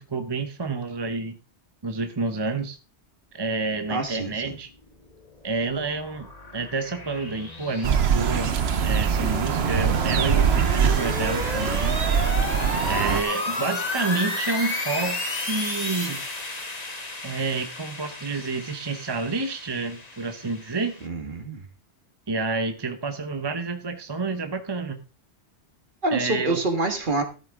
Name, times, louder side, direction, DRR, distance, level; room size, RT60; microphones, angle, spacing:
voice 1, 0.0-1.4 1.8-2.8 3.3-4.7 5.4-6.3 6.5-12.0 12.8-16.2 17.2-21.0 22.3-25.0 26.1-26.6, right 3 dB, 25° right, 0.8 m, -29 dB
voice 2, 3.9-4.6 21.0-21.6 26.0-27.2, right 2 dB, 45° right, 1.8 m, -27 dB
sound 1, 5.0-21.1, left 2 dB, 35° left, 1.5 m, -33 dB
sound 2, 7.8-13.2, right 7 dB, 65° right, 1.0 m, -23 dB
14.0 x 7.9 x 3.6 m
omnidirectional pair, 1.2 m